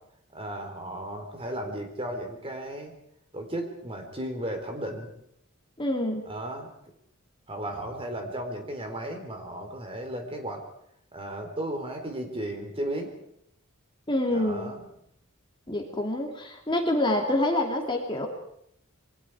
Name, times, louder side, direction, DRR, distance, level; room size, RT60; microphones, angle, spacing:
voice 1, 0.3-2.9 3.3-5.1 6.2-6.7 7.5-10.6 11.1-13.1 14.3-14.8, right 1 dB, 25° right, 4 dB, 3.9 m, -35 dB
voice 2, 5.8-6.2 14.1-14.7 15.7-18.3, left 1 dB, 20° left, 2 dB, 2.7 m, -26 dB
27.0 x 23.0 x 4.9 m, 0.74 s
head